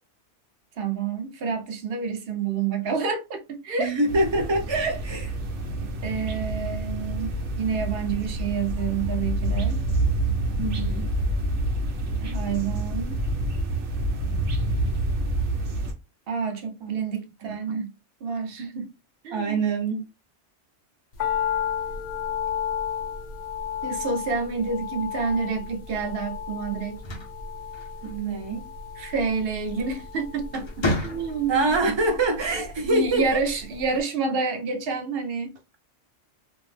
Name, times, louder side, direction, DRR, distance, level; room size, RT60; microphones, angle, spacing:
voice 1, 0.8-3.9 6.0-9.8 12.2-13.2 16.3-17.9 18.2-18.9 19.2-19.6 23.8-27.0 29.0-31.9 32.8-35.6, right 5 dB, 60° right, 0.8 m, -28 dB
voice 2, 3.8-5.4 10.6-11.1 12.2-12.3 16.8-16.9 17.4-17.5 19.3-20.0 28.0-28.7 31.5-33.4, right 2 dB, 35° right, 0.5 m, -25 dB
sound 1, 4.1-15.9, right 1 dB, 90° right, 1.0 m, -27 dB
sound 2, 21.2-33.5 33.7-33.8, left 8 dB, 70° left, 0.9 m, -33 dB
sound 3, 26.8-28.4 29.8-30.1 30.5-31.7, left 1 dB, 40° left, 0.4 m, -31 dB
2.6 x 2.0 x 3.2 m
omnidirectional pair, 1.2 m